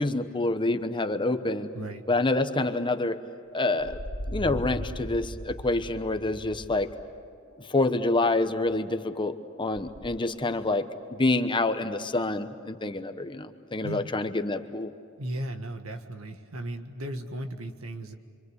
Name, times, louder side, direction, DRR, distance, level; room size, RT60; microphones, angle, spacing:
voice 1, 0.0-1.7 2.1-3.2 3.5-4.0 4.3-6.9 7.6-14.9, left 2 dB, 25° left, 9 dB, 1.0 m, -27 dB
sound 1, 3.8-7.1 7.5-8.4 8.7-8.8 9.8-10.2, equal, 85° left, 2.7 m, -38 dB
voice 2, 13.8-14.1 15.2-18.1, right 1 dB, 85° right, 6 dB, 1.8 m, -36 dB
27.0 x 25.5 x 8.1 m, 2.3 s
head